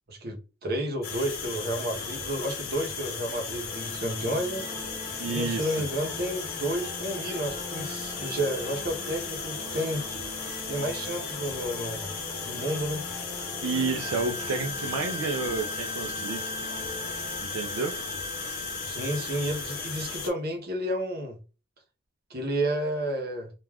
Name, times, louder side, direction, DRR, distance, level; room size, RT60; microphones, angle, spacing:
voice 1, 0.1-4.7 5.3-10.0 10.7-12.1 12.4-13.0 18.9-21.4 22.3-23.5, right 1 dB, 50° right, 0.8 m, -31 dB
sound 1, 1.0-20.3, left 5 dB, 50° left, 0.5 m, -36 dB
sound 2, 3.7-17.4, equal, 5° right, 0.8 m, -43 dB
voice 2, 5.2-5.8 13.6-16.6 17.4-18.0, right 4 dB, 80° right, 0.4 m, -30 dB
Wind instrument woodwind instrument, 14.0-20.1, equal, 70° left, 0.9 m, -39 dB
2.3 x 2.2 x 3.3 m
head